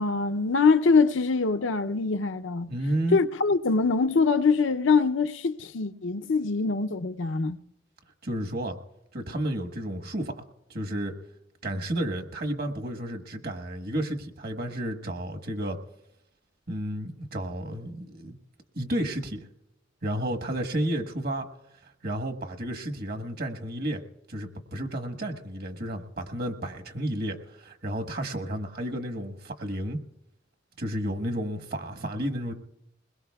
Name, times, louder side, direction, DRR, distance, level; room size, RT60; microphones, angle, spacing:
voice 1, 0.0-2.7 3.1-7.6, left 4 dB, 80° left, 0.6 m, -23 dB
voice 2, 2.7-3.2 8.2-8.8 9.1-10.4 10.7-11.1 11.6-15.8 16.7-18.4 18.7-19.5 20.0-21.5 21.8-24.0 24.3-30.0 30.8-32.5, right 1 dB, 50° right, 1.3 m, -32 dB
22.0 x 21.0 x 2.3 m
head